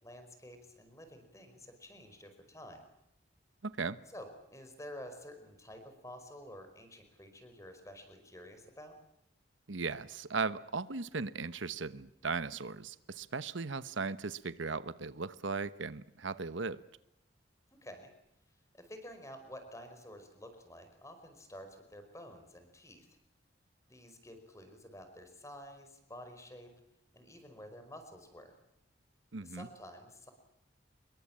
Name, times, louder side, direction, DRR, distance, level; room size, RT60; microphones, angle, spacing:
voice 1, 0.0-2.8 4.1-8.9 17.8-18.1 18.7-23.1 23.9-26.7 27.1-28.5 29.4-30.3, equal, 15° left, 7 dB, 5.0 m, -50 dB
voice 2, 3.6-4.0 9.7-16.8 29.3-29.7, right 4 dB, 80° right, 15 dB, 1.1 m, -37 dB
26.5 x 22.5 x 8.9 m, 0.79 s
head